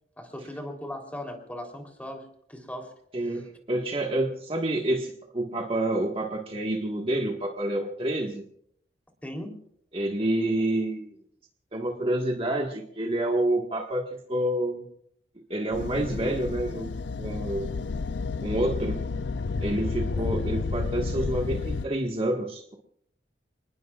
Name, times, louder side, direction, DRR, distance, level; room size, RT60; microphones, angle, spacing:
voice 1, 0.2-2.9 3.3-3.4 9.2-9.6 20.2-20.3, left 1 dB, 10° left, 2 dB, 3.6 m, -38 dB
voice 2, 3.1-8.4 9.9-11.1 11.7-14.8 15.5-16.9 17.2-17.7 18.4-19.0 19.6-22.8, right 1 dB, 30° right, 1 dB, 1.7 m, -28 dB
sound 1, 15.7-21.9, left 4 dB, 80° left, 0.5 m, -31 dB
29.5 x 20.0 x 2.5 m, 0.69 s
head